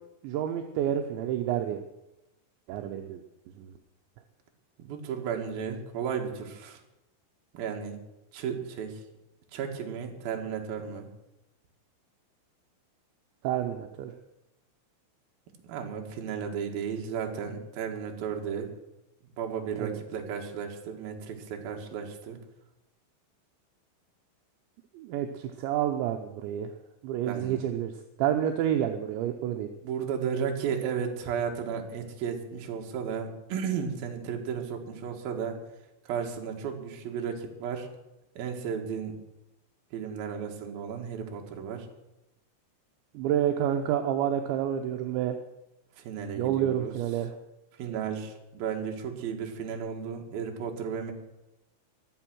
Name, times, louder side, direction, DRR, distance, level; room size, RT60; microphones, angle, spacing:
voice 1, 0.2-1.8 2.7-3.2 3.6-3.7 13.4-14.1 19.8-20.0 24.9-26.7 27.0-27.9 28.2-29.7 43.1-45.4 46.4-47.3, right 10 dB, 80° right, 4 dB, 2.8 m, -29 dB
voice 2, 4.8-6.8 7.5-8.0 8.3-9.0 9.5-11.1 15.6-18.7 19.4-22.4 27.2-27.6 29.8-35.6 36.0-37.9 38.4-39.2 39.9-41.9 46.0-46.9 47.8-51.1, right 7 dB, 55° right, 2 dB, 3.0 m, -34 dB
23.5 x 8.1 x 6.2 m, 0.94 s
omnidirectional pair, 6.0 m